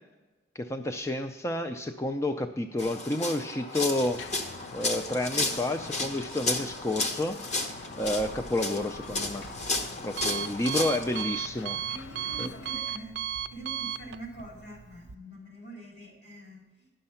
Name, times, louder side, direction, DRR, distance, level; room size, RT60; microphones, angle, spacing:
voice 1, 0.6-4.2 4.7-9.4 10.0-11.8 12.4-12.5, left 1 dB, 15° left, 5 dB, 0.4 m, -30 dB
sound 1, 2.8-11.2, left 2 dB, 40° left, 1.0 m, -33 dB
sound 2, 4.0-12.8, left 4 dB, 90° left, 0.6 m, -46 dB
Alarm, 8.8-15.2, right 10 dB, 75° right, 0.5 m, -37 dB
voice 2, 11.9-16.9, right 1 dB, 60° left, -1 dB, 3.6 m, -45 dB
10.5 x 6.5 x 5.6 m, 1.1 s
head